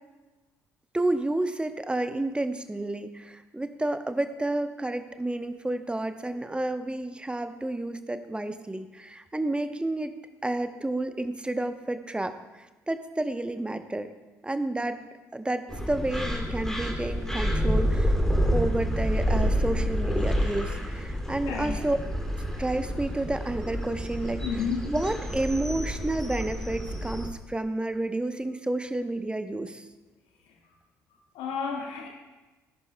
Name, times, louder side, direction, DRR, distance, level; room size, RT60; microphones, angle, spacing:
voice 1, 0.9-10.1 10.4-14.1 14.4-15.0 15.3-18.2 18.5-22.0 22.6-29.8, right 2 dB, 10° right, 9 dB, 0.9 m, -30 dB
sound 1, 15.7-27.3, equal, 5° left, 2.6 m, -28 dB
voice 2, 21.4-21.8 24.4-24.9 31.3-32.1, left 6 dB, 65° left, 0 dB, 1.6 m, -31 dB
18.0 x 11.0 x 2.2 m, 1.2 s
figure-of-eight pair, 50°, 9 cm